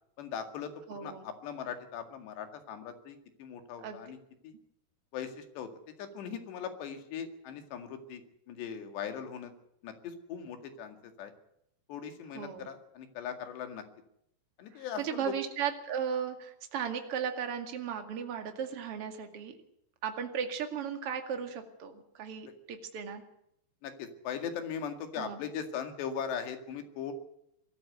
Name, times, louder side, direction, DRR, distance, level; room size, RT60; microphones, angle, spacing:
voice 1, 0.2-4.2 4.4-4.5 5.1-5.7 6.0-8.2 8.5-9.5 9.8-11.3 11.9-13.8 14.6-15.3 23.8-27.1, left 7 dB, 90° left, 7 dB, 4.3 m, -39 dB
voice 2, 0.9-1.2 3.8-4.0 12.3-12.7 14.7-19.6 20.0-23.2 25.2-25.4, right 7 dB, 40° right, 6 dB, 2.5 m, -36 dB
23.0 x 14.0 x 8.1 m, 0.74 s
omnidirectional pair, 4.8 m